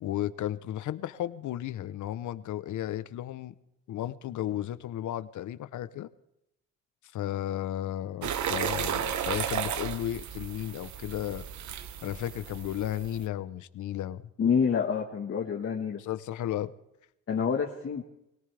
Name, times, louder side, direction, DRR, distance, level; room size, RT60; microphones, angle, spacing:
voice 1, 0.0-3.5 3.9-6.1 7.1-11.4 12.0-14.3 16.0-16.7, left 12 dB, 75° left, 14 dB, 0.9 m, -34 dB
sound 1, 8.2-13.2, right 9 dB, 70° right, 1.2 m, -34 dB
voice 2, 14.4-16.0 17.3-18.0, left 6 dB, 45° left, 1 dB, 1.6 m, -27 dB
23.5 x 18.0 x 3.4 m, 0.86 s
cardioid pair, 90°, 30 cm